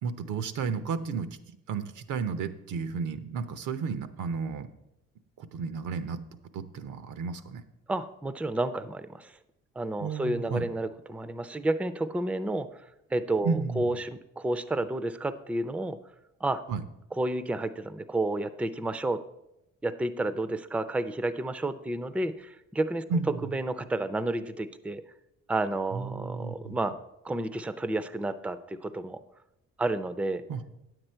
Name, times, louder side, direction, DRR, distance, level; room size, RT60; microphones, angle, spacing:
voice 1, 0.0-1.3 1.7-4.7 5.4-6.2 6.5-7.6 10.0-10.7 13.4-13.8 16.7-16.8 23.1-23.4 25.9-26.8 30.5-30.6, right 5 dB, 80° right, 11 dB, 0.8 m, -32 dB
voice 2, 7.9-9.4 9.8-16.0 16.4-16.6 17.2-19.2 19.8-23.0 23.4-25.0 25.5-27.0 27.2-29.2 29.8-30.4, right 2 dB, 5° right, 13 dB, 0.4 m, -31 dB
9.4 x 7.9 x 4.4 m, 0.87 s
cardioid pair, 90°, 30 cm